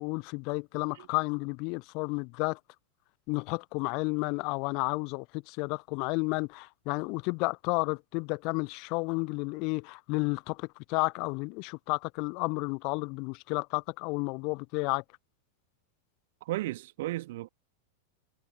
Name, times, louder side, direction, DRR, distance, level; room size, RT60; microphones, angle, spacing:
voice 1, 0.0-2.6 3.3-15.0, left 31 dB, 45° left, 0.6 m, -32 dB
voice 2, 16.4-17.5, right 17 dB, 55° right, 1.9 m, -34 dB
figure-of-eight pair, 90°, 0 cm